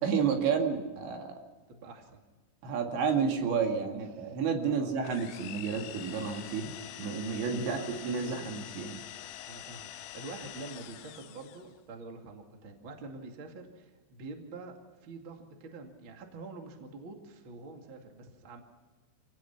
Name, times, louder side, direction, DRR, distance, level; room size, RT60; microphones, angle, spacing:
voice 1, 0.0-1.4 2.6-6.7 7.0-9.0, right 6 dB, 65° right, 3 dB, 4.2 m, -31 dB
voice 2, 1.7-2.2 4.1-4.9 7.6-8.4 9.4-18.6, right 3 dB, 40° right, 3 dB, 1.8 m, -46 dB
sound 1, 5.0-11.7, left 13 dB, 80° left, 3.5 m, -45 dB
26.5 x 18.0 x 5.8 m, 1.3 s
omnidirectional pair, 5.9 m